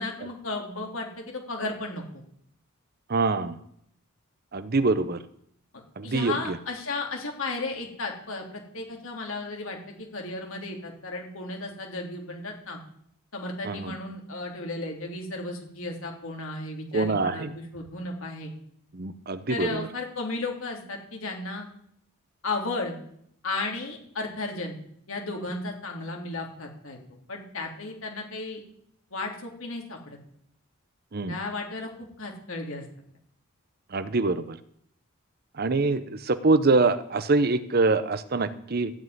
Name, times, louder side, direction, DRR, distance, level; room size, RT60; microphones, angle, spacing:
voice 1, 0.0-2.2 6.0-12.8 13.3-18.5 19.5-21.7 22.4-22.9 23.4-24.8 25.1-27.0 27.3-28.6 29.1-30.2 31.3-32.9, left 2 dB, 70° left, 1 dB, 3.1 m, -34 dB
voice 2, 3.1-3.6 4.5-5.2 6.0-6.6 13.6-14.0 16.9-17.5 18.9-19.9 31.1-31.4 33.9-34.6 35.6-38.9, right 3 dB, 45° right, 13 dB, 0.7 m, -24 dB
14.0 x 5.5 x 9.4 m, 0.68 s
head